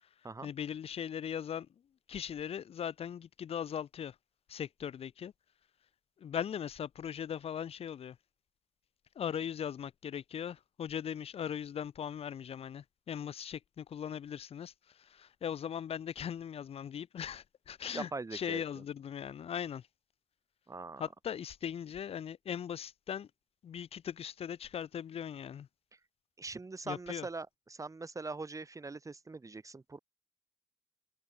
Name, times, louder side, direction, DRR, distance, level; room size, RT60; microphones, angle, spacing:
voice 1, 0.4-1.7 2.1-4.1 4.5-5.3 6.2-8.2 9.1-14.7 15.0-19.8 21.0-23.3 23.6-25.7 26.9-27.3, left 8 dB, 85° left, 2.8 m, -39 dB
voice 2, 17.9-18.8 20.7-21.1 26.4-30.0, right 3 dB, 35° right, 1.2 m, -42 dB
cardioid pair, 60°, 10 cm